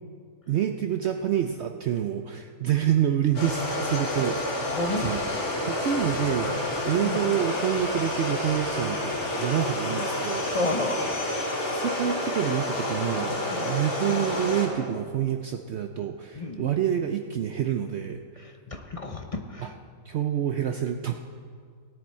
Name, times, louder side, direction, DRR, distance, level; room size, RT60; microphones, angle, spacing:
voice 1, 0.5-5.2 5.7-10.5 11.7-18.2 19.6-19.7 20.1-21.1, right 10 dB, 70° right, 6 dB, 0.6 m, -27 dB
sound 1, 3.3-14.7, left 1 dB, 70° left, 2.5 m, -29 dB
voice 2, 4.7-5.2 7.0-7.2 10.5-11.1 13.5-13.7 16.3-16.6 18.4-19.7, left 2 dB, 35° left, 4 dB, 0.5 m, -31 dB
17.5 x 10.0 x 4.3 m, 2.1 s
omnidirectional pair, 1.6 m